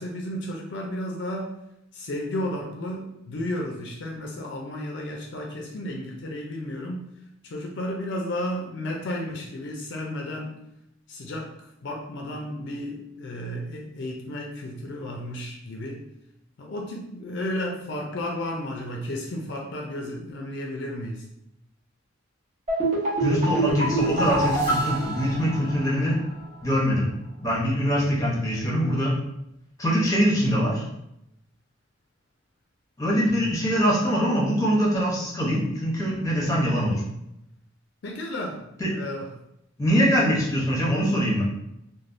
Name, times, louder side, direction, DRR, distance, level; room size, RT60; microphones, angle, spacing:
voice 1, 0.0-1.5 1.9-7.1 7.4-10.5 11.1-11.5 11.8-16.0 16.6-21.2 33.3-33.5 38.0-39.3, left 1 dB, 60° left, 0 dB, 0.4 m, -33 dB
sound 1, 22.7-26.1 26.4-26.5, right 2 dB, 35° right, 0.9 m, -26 dB
voice 2, 23.2-26.2 26.6-27.1 27.4-29.1 29.8-30.8 33.0-37.0 38.8-38.9 39.8-41.4, equal, 15° left, -4 dB, 0.8 m, -23 dB
3.2 x 2.2 x 2.5 m, 0.82 s
head